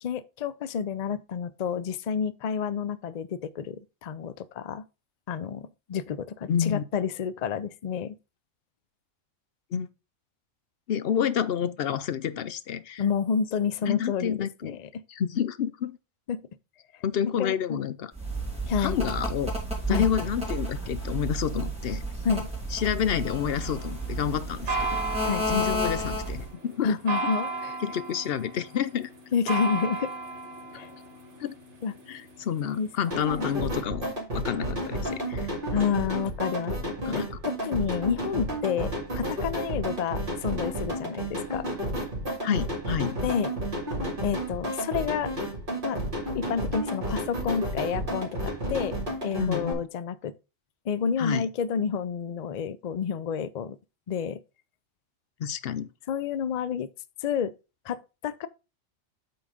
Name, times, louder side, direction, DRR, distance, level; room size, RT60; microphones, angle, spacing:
voice 1, 0.0-4.8 5.3-8.2 13.0-14.9 16.3-16.4 17.4-17.8 18.6-19.0 19.9-20.1 22.2-22.5 25.3-25.5 26.8-27.8 29.3-30.1 30.7-30.9 31.8-31.9 32.8-32.9 35.7-41.7 43.2-43.5 44.2-45.3 45.8-46.0 46.3-48.9 49.2-50.3 50.9-53.8 54.1-54.4 56.1-56.9 57.2-57.5 57.8-58.5, left 7 dB, 80° left, 0.3 m, -29 dB
voice 2, 6.5-6.8 9.7-9.9 10.9-13.0 13.8-14.8 15.1-16.0 17.0-18.1 18.8-19.5 19.9-22.0 22.7-25.0 25.5-26.9 27.8-29.1 31.4-31.5 32.1-35.5 37.1-37.3 42.4-43.2 49.4-49.7 51.2-51.5 55.4-55.9, left 8 dB, 60° left, 0.7 m, -29 dB
sound 1, 18.2-26.5, right 1 dB, 5° right, 2.9 m, -31 dB
sound 2, 23.5-33.6, right 3 dB, 55° right, 1.8 m, -36 dB
sound 3, 33.1-49.7, equal, 40° right, 2.6 m, -31 dB
8.3 x 4.0 x 5.1 m
omnidirectional pair, 1.4 m